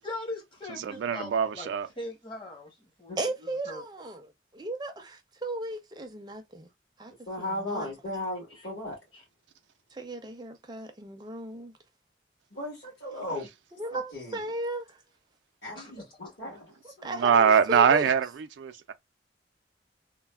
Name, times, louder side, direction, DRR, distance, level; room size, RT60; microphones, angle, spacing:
voice 1, 0.0-1.7 2.0-2.7 3.0-3.2 3.7-3.8 8.5-8.7 9.1-9.2 15.7-16.4, left 2 dB, 25° left, 0.9 m, -40 dB
voice 2, 0.8-1.9 17.0-18.9, right 7 dB, 90° right, 0.3 m, -23 dB
voice 3, 3.2-6.7 7.0-7.1 7.4-7.9 9.9-11.7 13.7-15.0 17.0-18.1, right 2 dB, 25° right, 0.5 m, -36 dB
voice 4, 7.3-9.0 12.5-13.5 13.9-14.4 15.6-16.7, left 1 dB, 60° left, 1.8 m, -36 dB
3.1 x 2.1 x 2.3 m
head